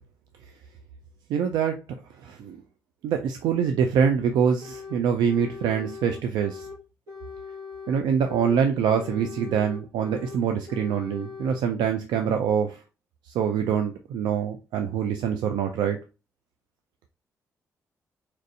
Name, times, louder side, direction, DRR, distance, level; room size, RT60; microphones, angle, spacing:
voice 1, 1.3-1.8 2.2-2.6 3.0-6.7 7.9-12.8 13.3-16.0, right 7 dB, 85° right, 0.4 m, -25 dB
sound 1, 4.6-5.0 5.3-6.8 7.1-8.6 8.9-10.4 10.7-11.6, left 5 dB, 60° right, 1.5 m, -40 dB
4.5 x 2.5 x 2.6 m
supercardioid pair, 50°, 7 cm